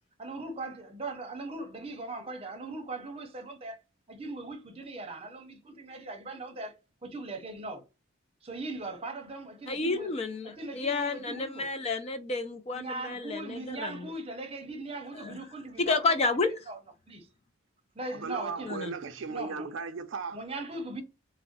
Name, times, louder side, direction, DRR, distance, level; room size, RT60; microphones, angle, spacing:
voice 1, 0.2-3.8 4.1-6.7 7.0-7.8 8.4-10.1 10.4-11.7 12.7-16.0 16.7-16.8 17.1-17.3 18.0-18.7 19.3-19.7 20.3-21.0, right 2 dB, 30° right, 0.7 m, -39 dB
voice 2, 9.7-14.1 15.1-15.4 15.8-16.7 18.6-18.9, left 3 dB, 30° left, 0.3 m, -31 dB
voice 3, 18.1-20.4, right 4 dB, 60° right, 0.4 m, -36 dB
2.6 x 2.0 x 3.8 m
head